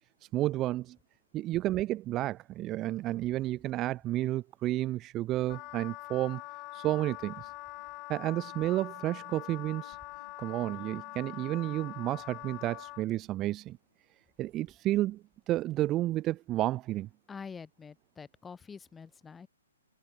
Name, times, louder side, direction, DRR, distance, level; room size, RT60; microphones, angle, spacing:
voice 1, 0.3-1.0 1.3-6.4 6.7-7.5 8.1-10.0 10.4-13.8 14.4-15.2 15.5-17.1, right 15 dB, 25° right, 0.3 m, -31 dB
sound 1, 4.7-6.4 6.9-9.5 9.9-11.1 11.6-11.7 12.1-13.2 13.7-13.9 14.2-15.9 16.4-16.5, right 3 dB, 5° right, 5.4 m, -68 dB
sound 2, 5.0-14.4, left 4 dB, 85° left, 7.1 m, -67 dB
Wind instrument woodwind instrument, 5.5-13.0, left 23 dB, 30° left, 1.4 m, -44 dB
voice 2, 17.3-19.5, left 5 dB, 10° left, 0.7 m, -46 dB
hypercardioid pair, 140°, 0 cm